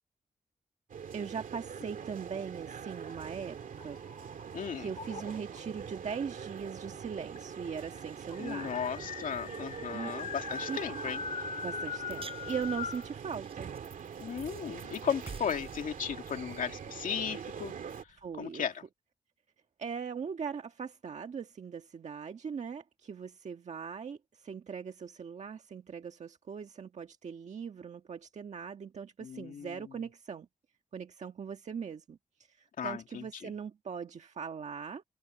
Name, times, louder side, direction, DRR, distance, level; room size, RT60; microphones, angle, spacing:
sound 1, 0.9-18.0, right 7 dB, 90° right, 2.3 m, -43 dB
voice 1, 1.1-4.0 4.7-8.8 9.9-10.1 10.7-10.8 11.6-13.7 18.2-18.7 19.8-30.5 30.9-32.2 32.5-35.0, right 6 dB, 60° right, 1.6 m, -40 dB
sound 2, 2.9-4.4 4.9-5.6 6.6-6.7 6.9-7.0 7.4-13.1, left 6 dB, 50° left, 0.6 m, -41 dB
voice 2, 4.5-4.9 8.4-11.2 14.2-17.7 18.4-18.8 29.2-29.8 32.8-33.4, left 7 dB, 90° left, 2.4 m, -36 dB
sound 3, 12.1-18.5, right 5 dB, 45° right, 7.7 m, -52 dB
wide cardioid pair, 140°, 13 cm